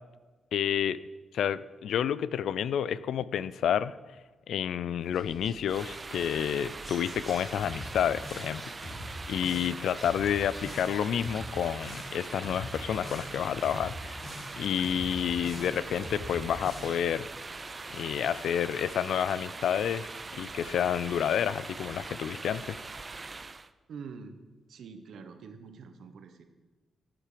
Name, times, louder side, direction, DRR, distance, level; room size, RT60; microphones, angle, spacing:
voice 1, 0.5-1.0 1.3-3.9 4.5-9.0 9.3-14.2 14.6-17.2 17.9-20.1 20.4-22.8, left 9 dB, 80° left, 18 dB, 0.4 m, -29 dB
sound 1, 5.0-18.5, left 1 dB, 10° left, 3.4 m, -54 dB
sound 2, 5.7-23.7, right 3 dB, 25° right, 0.4 m, -42 dB
sound 3, 7.6-8.6 8.8-9.8 10.0-11.0 11.2-12.2 12.4-13.4 13.6-14.6 14.8-15.8 16.0-17.0, left 1 dB, 50° left, 3.0 m, -42 dB
voice 2, 23.9-24.4 24.7-26.5, right 5 dB, 70° right, 8 dB, 1.1 m, -45 dB
13.0 x 7.6 x 5.1 m, 1.3 s
cardioid pair, 125°, 0 cm